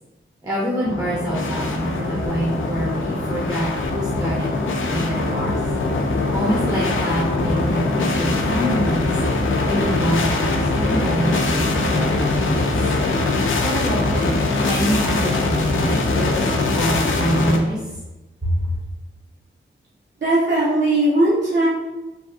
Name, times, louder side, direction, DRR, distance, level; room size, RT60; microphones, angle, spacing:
voice 1, 0.4-4.5 4.9-5.6 6.3-9.2 9.6-12.7 13.6-18.0 18.4-18.7, right 1 dB, 20° right, -5 dB, 0.6 m, -25 dB
sound 1, 0.8-17.6, left 2 dB, 80° left, 0.4 m, -22 dB
voice 2, 20.2-21.7, right 1 dB, 65° right, -6 dB, 0.7 m, -18 dB
3.4 x 2.3 x 2.4 m, 1.0 s
wide cardioid pair, 90°, 20 cm